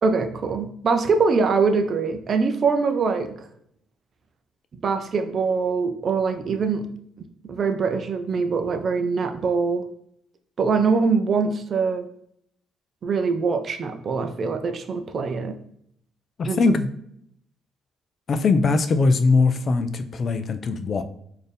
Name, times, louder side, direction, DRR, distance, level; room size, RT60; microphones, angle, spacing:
voice 1, 0.0-3.3 4.8-6.9 7.5-9.8 10.6-12.1 13.0-15.5 16.5-16.6, right 4 dB, 45° right, 8 dB, 0.4 m, -23 dB
voice 2, 16.4-16.9 18.3-21.0, left 3 dB, 45° left, 10 dB, 0.4 m, -21 dB
4.1 x 2.6 x 3.4 m, 0.70 s
cardioid pair, 120°, 0 cm